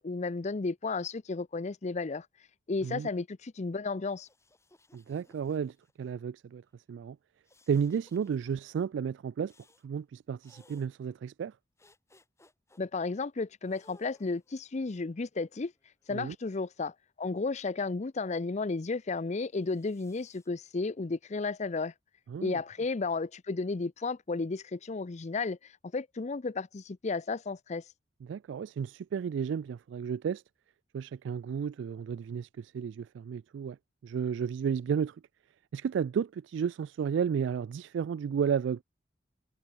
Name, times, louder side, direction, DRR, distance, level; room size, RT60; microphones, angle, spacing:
voice 1, 0.0-2.3 2.7-4.3 12.8-15.7 16.1-21.9 22.4-27.8, left 3 dB, 40° left, 0.5 m, -33 dB
sound 1, 4.1-6.1 7.4-8.5 9.4-9.9 10.4-10.9 11.8-12.8 13.7-14.6 15.4-16.5 19.5-20.5, left 2 dB, 15° left, 3.1 m, -63 dB
voice 2, 4.9-6.6 6.9-7.2 7.7-9.5 9.8-11.5 16.1-16.4 22.3-22.6 28.2-30.4 30.9-33.8 34.0-35.2 35.7-38.8, right 7 dB, 75° right, 0.3 m, -32 dB
head